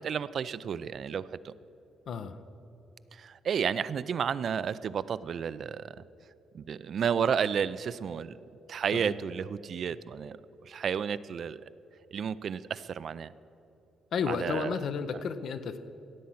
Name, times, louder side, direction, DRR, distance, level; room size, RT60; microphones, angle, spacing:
voice 1, 0.0-1.5 3.1-6.0 6.5-8.4 8.7-10.4 10.6-11.6 12.1-13.3 14.3-14.8, right 7 dB, 55° right, 16 dB, 0.3 m, -32 dB
voice 2, 2.1-2.4 8.9-9.1 14.1-15.8, left 6 dB, 65° left, 10 dB, 0.7 m, -32 dB
16.0 x 7.5 x 5.7 m, 2.9 s
cardioid pair, 90°, 0 cm